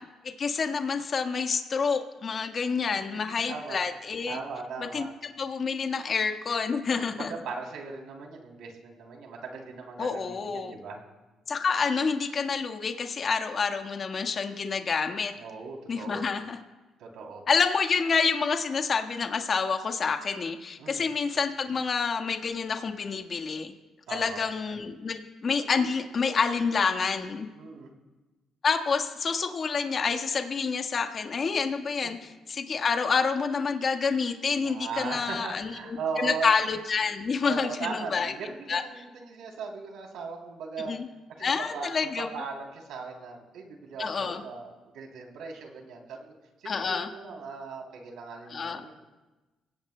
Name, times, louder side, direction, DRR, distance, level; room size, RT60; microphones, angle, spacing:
voice 1, 0.4-4.4 4.8-5.1 5.4-7.3 10.0-10.8 11.5-15.3 15.9-16.6 17.5-23.7 24.1-27.5 28.6-38.3 38.7-38.8 40.8-41.1 41.4-42.3 44.0-44.4 46.6-47.1 48.5-48.8, left 5 dB, 45° left, 5 dB, 1.4 m, -28 dB
voice 2, 2.9-3.8 4.3-5.1 6.8-11.0 15.4-16.2 17.0-17.4 20.8-21.1 24.1-24.4 27.5-27.9 32.0-32.1 34.6-36.6 37.4-41.0 41.4-46.3 46.6-48.9, right 5 dB, 80° right, 1 dB, 3.1 m, -38 dB
25.5 x 17.0 x 2.2 m, 1.2 s
cardioid pair, 80°, 0 cm